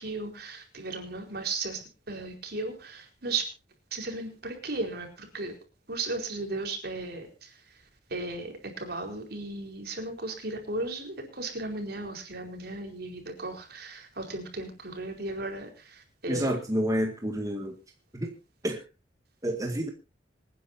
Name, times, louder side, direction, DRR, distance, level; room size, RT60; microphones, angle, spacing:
voice 1, 0.0-3.5 3.9-5.6 5.9-7.8 8.1-16.6, right 2 dB, 60° right, 4 dB, 4.5 m, -36 dB
voice 2, 16.3-17.7 18.1-18.3 18.6-18.8 19.4-19.9, equal, 20° right, 3 dB, 1.9 m, -29 dB
26.0 x 10.0 x 2.8 m, 0.30 s
head